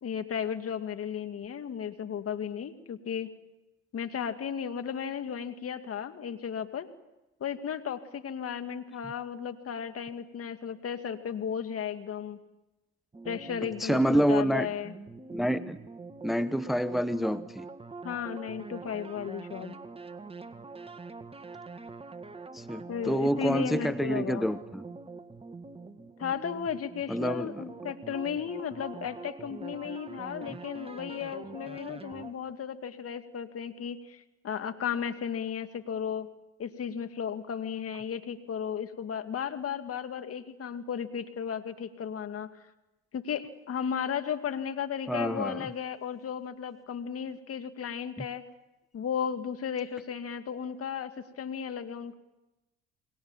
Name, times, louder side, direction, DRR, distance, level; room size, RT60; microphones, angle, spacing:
voice 1, 0.0-3.3 3.9-6.9 7.4-12.4 13.3-14.9 18.0-19.8 22.9-24.5 26.2-36.3 36.6-42.5 43.1-48.4 48.9-52.2, left 8 dB, 45° left, 8 dB, 2.2 m, -35 dB
sound 1, 13.1-32.3, right 4 dB, 20° right, 1.8 m, -44 dB
voice 2, 13.8-14.7 15.3-15.7 16.2-17.7 22.5-24.8 27.1-27.5 45.1-45.7 48.2-48.3, equal, ahead, 13 dB, 0.9 m, -27 dB
29.5 x 21.5 x 7.4 m, 1.0 s
hypercardioid pair, 65°, 32 cm